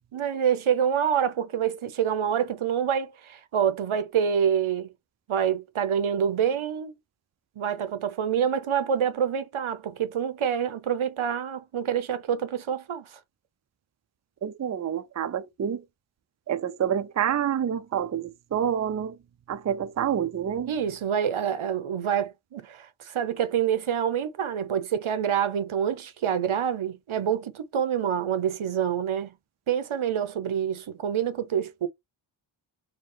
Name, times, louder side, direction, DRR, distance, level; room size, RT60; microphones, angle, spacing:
voice 1, 0.1-4.9 5.3-6.9 7.6-13.2 20.7-29.3 29.7-31.9, right 8 dB, 85° right, 0.7 m, -27 dB
voice 2, 14.4-15.8 16.5-19.2 19.5-20.7, right 9 dB, 35° right, 0.4 m, -28 dB
4.5 x 2.3 x 3.3 m
wide cardioid pair, 45°, 48 cm